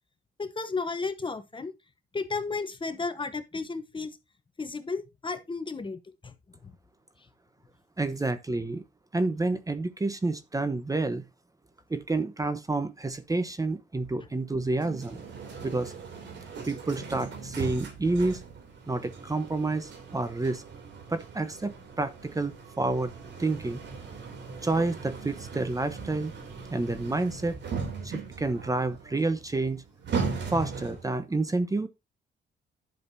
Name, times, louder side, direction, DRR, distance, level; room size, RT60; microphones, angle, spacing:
voice 1, 0.4-1.7 2.1-4.2 4.6-6.3 6.6-6.7, left 4 dB, 25° left, 1.0 m, -33 dB
voice 2, 8.0-8.8 9.1-11.2 11.9-15.2 15.6-15.9 16.6-18.4 18.9-20.6 21.1-23.1 23.4-23.8 24.6-26.3 26.7-27.6 28.0-29.8 30.5-31.9, right 2 dB, 15° right, 1.0 m, -29 dB
sound 1, 14.8-31.2, right 5 dB, 65° right, 3.0 m, -38 dB
11.0 x 6.6 x 2.7 m
cardioid pair, 90°, 20 cm